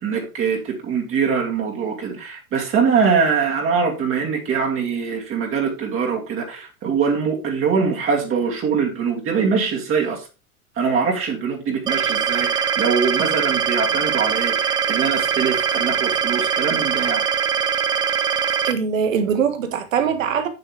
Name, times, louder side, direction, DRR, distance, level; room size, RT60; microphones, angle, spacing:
voice 1, 0.0-10.3 10.8-17.2, right 5 dB, 30° right, 2.7 m, -23 dB
sound 1, 11.9-18.7, right 7 dB, 10° right, 0.4 m, -22 dB
voice 2, 18.6-20.5, right 7 dB, 65° right, 1.7 m, -22 dB
9.0 x 8.0 x 3.4 m
figure-of-eight pair, 90°, 43 cm